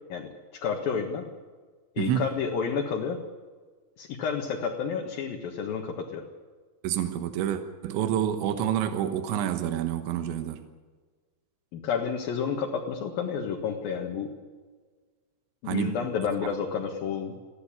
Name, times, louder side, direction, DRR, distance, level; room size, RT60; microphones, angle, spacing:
voice 1, 0.1-1.2 2.0-3.2 4.0-6.2 11.7-14.3 15.6-17.3, left 6 dB, 60° left, 3.1 m, -30 dB
voice 2, 2.0-2.3 6.8-10.6 15.7-16.0, right 10 dB, 85° right, 3.6 m, -28 dB
22.5 x 15.5 x 8.6 m
omnidirectional pair, 5.2 m